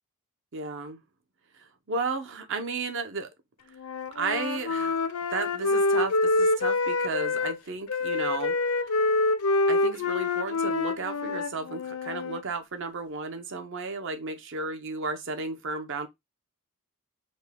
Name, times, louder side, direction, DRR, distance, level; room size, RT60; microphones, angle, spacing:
voice 1, 0.5-1.0 1.6-3.3 4.1-5.0 5.3-8.6 8.9-9.0 9.7-16.1, right 4 dB, 55° right, 0.7 m, -33 dB
Wind instrument woodwind instrument, 3.8-7.6 7.9-12.4, left 3 dB, 75° left, 0.5 m, -26 dB
5.3 x 2.2 x 3.4 m
head